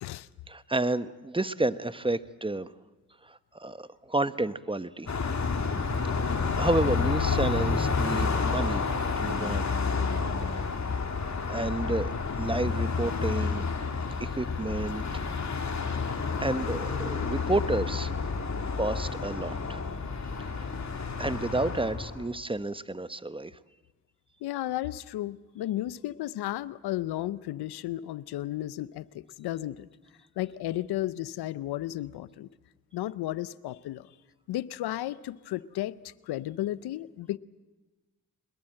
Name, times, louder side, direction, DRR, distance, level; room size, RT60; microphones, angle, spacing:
voice 1, 0.5-2.7 3.2-5.1 6.1-8.9 9.2-9.7 10.4-10.6 11.5-13.7 14.2-15.2 16.0-16.1 16.4-18.1 18.8-19.8 20.5-20.7 21.2-23.6, right 2 dB, 15° right, 14 dB, 1.1 m, -31 dB
Car passing by, 5.1-22.3, left 4 dB, 45° left, 2.9 m, -30 dB
voice 2, 24.4-29.9 30.4-32.5 32.9-34.1 34.5-37.4, left 14 dB, 80° left, 18 dB, 0.7 m, -34 dB
22.5 x 21.5 x 7.7 m, 1.2 s
supercardioid pair, 40°, 38 cm